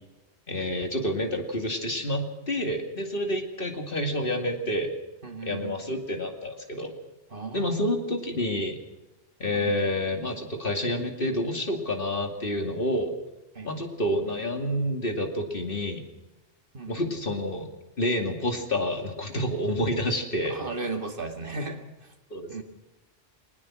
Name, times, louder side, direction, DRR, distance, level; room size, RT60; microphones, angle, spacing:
voice 1, 0.5-4.9 5.4-6.9 7.5-8.8 9.4-13.1 13.6-16.0 16.9-17.7 18.0-20.6 22.3-22.6, left 1 dB, 50° left, 4 dB, 2.7 m, -28 dB
voice 2, 5.2-5.8 7.3-8.0 9.5-9.8 13.5-13.7 16.7-17.1 20.5-22.1 22.5-22.6, right 3 dB, 50° right, 5 dB, 2.2 m, -35 dB
21.5 x 19.5 x 6.2 m, 1.0 s
omnidirectional pair, 1.1 m